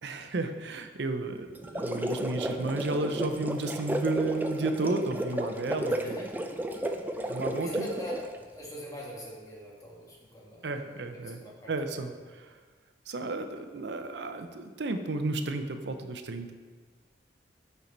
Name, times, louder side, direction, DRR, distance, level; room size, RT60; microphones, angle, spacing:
voice 1, 0.0-6.3 7.3-7.9 10.6-11.4 11.7-12.5 13.1-16.5, right 3 dB, 70° right, 7 dB, 0.6 m, -32 dB
sound 1, 1.6-8.4, equal, 10° right, 0.3 m, -33 dB
voice 2, 7.6-12.2, equal, 20° left, -4 dB, 1.4 m, -44 dB
8.2 x 4.6 x 3.9 m, 1.4 s
head